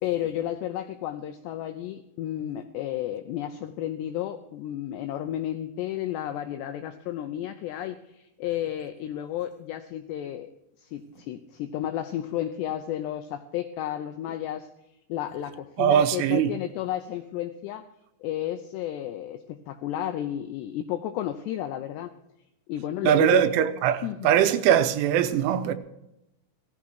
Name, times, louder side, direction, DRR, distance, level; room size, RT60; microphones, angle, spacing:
voice 1, 0.0-10.5 10.8-14.7 15.1-17.9 18.2-22.1 22.7-23.4 24.0-24.3, left 12 dB, 85° left, 2.4 m, -32 dB
voice 2, 15.8-16.5 23.0-25.7, right 10 dB, 80° right, 3.1 m, -21 dB
17.5 x 14.0 x 4.7 m
omnidirectional pair, 5.7 m